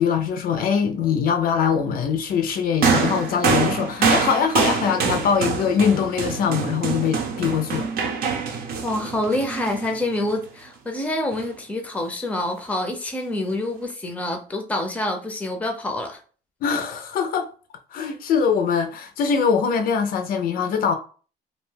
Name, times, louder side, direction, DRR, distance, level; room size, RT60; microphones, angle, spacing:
voice 1, 0.0-7.9 16.6-17.5 17.9-20.9, left 6 dB, 60° left, 0.4 m, -22 dB
sound 1, 2.8-10.3 11.3-11.5, right 5 dB, 65° right, 0.7 m, -25 dB
voice 2, 8.8-16.2, left 1 dB, 10° left, 0.5 m, -27 dB
2.6 x 2.1 x 3.2 m
cardioid pair, 110°, 17 cm